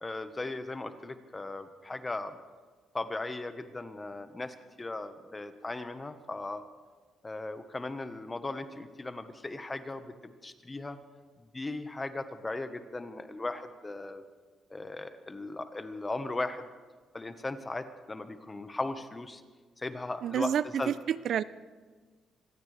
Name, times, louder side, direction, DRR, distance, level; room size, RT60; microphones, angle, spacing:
voice 1, 0.0-2.4 2.9-6.6 7.2-11.0 11.4-14.2 14.7-16.7 17.1-19.4 19.8-20.9, left 2 dB, 20° left, 9 dB, 1.2 m, -37 dB
voice 2, 20.2-21.4, right 9 dB, 65° right, 17 dB, 0.5 m, -29 dB
25.0 x 16.5 x 3.4 m, 1.4 s
cardioid pair, 90°, 0 cm